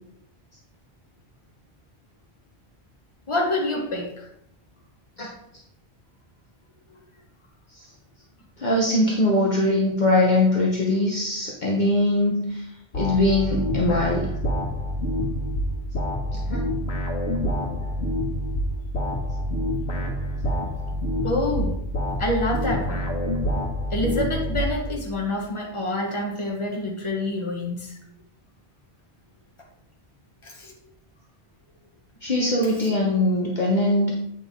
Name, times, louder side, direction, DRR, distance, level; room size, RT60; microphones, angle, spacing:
voice 1, 3.3-4.3 21.2-21.7 22.2-23.1 23.9-28.0 30.4-30.7, left 1 dB, 30° left, -1 dB, 1.5 m, -27 dB
voice 2, 8.6-12.6 12.9-14.3 16.5-16.6 32.2-34.1, left 1 dB, 45° left, -3 dB, 1.2 m, -21 dB
sound 1, 12.9-25.1, equal, 75° left, 1.8 m, -27 dB
8.5 x 6.0 x 3.7 m, 0.76 s
omnidirectional pair, 1.1 m